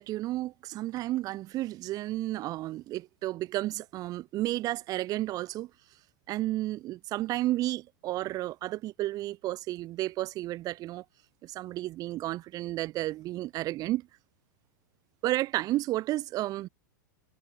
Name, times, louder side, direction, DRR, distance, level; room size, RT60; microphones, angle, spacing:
voice 1, 0.0-5.7 6.3-11.0 11.4-14.1 15.2-16.7, right 16 dB, 35° right, 0.9 m, -32 dB
figure-of-eight pair, 100°, 11 cm